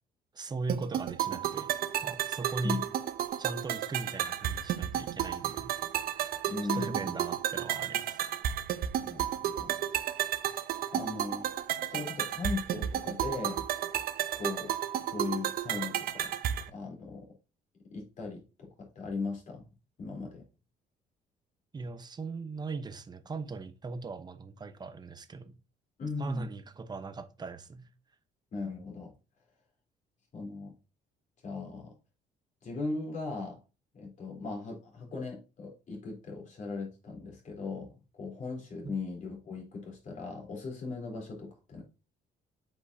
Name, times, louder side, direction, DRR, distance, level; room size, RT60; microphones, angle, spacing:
voice 1, 0.3-1.7 2.0-2.9 3.4-5.7 6.0-6.5 6.7-8.2 21.7-25.6 26.2-27.9 38.8-39.0, right 3 dB, 25° right, 0.9 m, -39 dB
sound 1, 0.7-16.7, right 11 dB, 60° right, 0.7 m, -33 dB
voice 2, 6.5-7.1 9.0-9.8 10.9-11.5 11.9-13.7 14.4-16.3 16.7-17.3 17.9-19.7 20.0-20.5 26.0-26.5 28.5-29.1 30.3-30.7 31.4-31.9 32.6-33.6 33.9-41.8, left 3 dB, 45° left, 3.7 m, -38 dB
8.1 x 5.4 x 2.8 m
cardioid pair, 110°, 17 cm